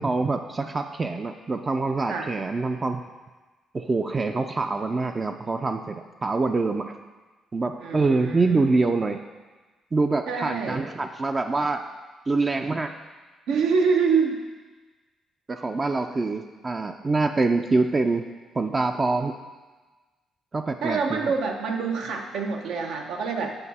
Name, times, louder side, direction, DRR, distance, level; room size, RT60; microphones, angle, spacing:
voice 1, 0.0-3.0 3.7-6.0 6.2-7.0 7.5-9.2 9.9-11.8 12.3-12.9 15.5-18.3 18.6-19.3 20.5-21.3, right 3 dB, 30° right, 5 dB, 0.4 m, -25 dB
voice 2, 7.8-8.6 10.3-10.9 13.5-14.4 20.8-23.6, right 5 dB, 85° right, 2 dB, 0.8 m, -26 dB
7.9 x 4.6 x 4.2 m, 1.3 s
cardioid pair, 90°, 0 cm